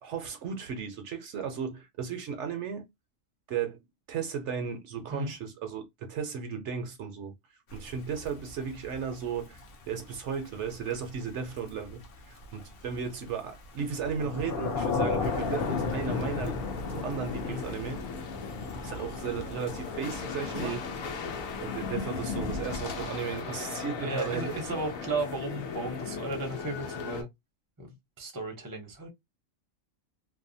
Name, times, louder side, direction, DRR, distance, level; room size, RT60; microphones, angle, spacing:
voice 1, 0.0-2.9 3.5-7.3 7.7-18.0 18.8-20.8 21.6-24.8, right 6 dB, 70° right, 0.8 m, -35 dB
Thunder / Rain, 7.7-23.2, left 4 dB, 55° left, 0.7 m, -35 dB
sound 1, 15.2-27.2, left 5 dB, 90° left, 1.1 m, -38 dB
voice 2, 23.3-27.3 27.8-27.9 28.2-29.1, right 2 dB, 20° right, 0.5 m, -35 dB
2.6 x 2.1 x 2.5 m
omnidirectional pair, 1.4 m